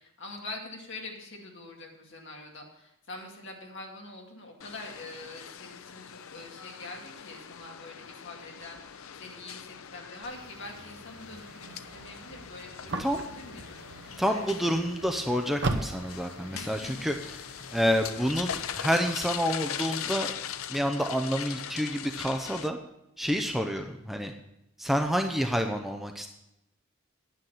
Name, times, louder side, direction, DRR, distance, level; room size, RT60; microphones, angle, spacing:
voice 1, 0.0-14.4 16.5-17.1 23.5-23.9, left 2 dB, 60° left, 1 dB, 2.2 m, -45 dB
sound 1, 4.6-22.7, left 9 dB, 75° left, 0.6 m, -41 dB
sound 2, 10.2-18.8, right 2 dB, 55° right, 1.0 m, -39 dB
voice 2, 14.2-17.1 17.7-20.3 20.7-22.8 23.2-24.3 24.8-26.3, equal, ahead, 4 dB, 0.6 m, -28 dB
9.4 x 9.2 x 5.6 m, 0.85 s
head